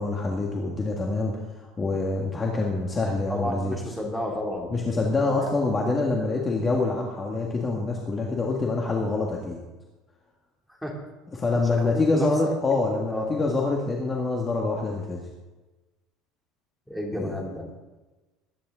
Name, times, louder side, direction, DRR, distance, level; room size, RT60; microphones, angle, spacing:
voice 1, 0.0-3.8 4.7-9.6 11.3-15.2 17.1-17.3, left 3 dB, 20° left, -1 dB, 1.7 m, -26 dB
voice 2, 3.3-4.7 5.3-5.8 10.8-10.9 11.6-12.5 13.1-13.4 16.9-17.7, left 1 dB, ahead, -1 dB, 2.7 m, -32 dB
21.5 x 10.0 x 3.7 m, 1.2 s
cardioid pair, 155°, 0 cm